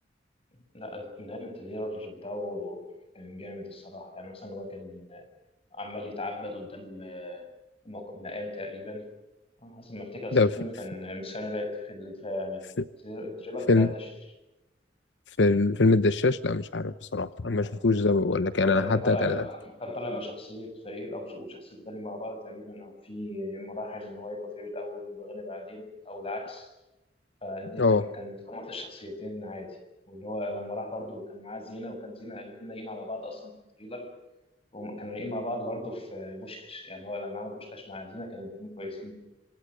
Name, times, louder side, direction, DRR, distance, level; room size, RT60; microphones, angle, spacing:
voice 1, 0.7-2.9 3.1-5.2 5.7-7.5 7.8-9.1 9.6-12.7 13.0-14.1 17.5-17.8 18.6-26.7 27.4-29.8 30.1-33.5 33.8-34.1 34.7-39.1, left 1 dB, 35° left, 7 dB, 6.8 m, -37 dB
voice 2, 15.4-19.4 27.8-28.0, left 3 dB, 85° left, 14 dB, 0.9 m, -23 dB
27.0 x 26.5 x 6.4 m, 0.97 s
head